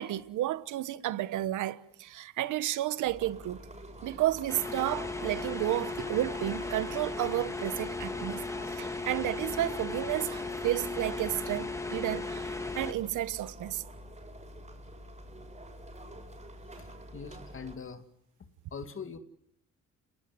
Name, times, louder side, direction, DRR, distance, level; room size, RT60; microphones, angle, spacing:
voice 1, 0.0-3.6 4.0-8.4 8.7-13.8, right 14 dB, 85° right, 1.2 m, -32 dB
sound 1, 3.0-17.8, right 1 dB, 25° right, 7.3 m, -47 dB
sound 2, 4.5-12.9, left 3 dB, 10° left, 2.1 m, -36 dB
voice 2, 16.7-18.0 18.7-19.2, left 6 dB, 45° left, 2.4 m, -42 dB
30.0 x 18.5 x 9.6 m
cardioid pair, 90°, 30 cm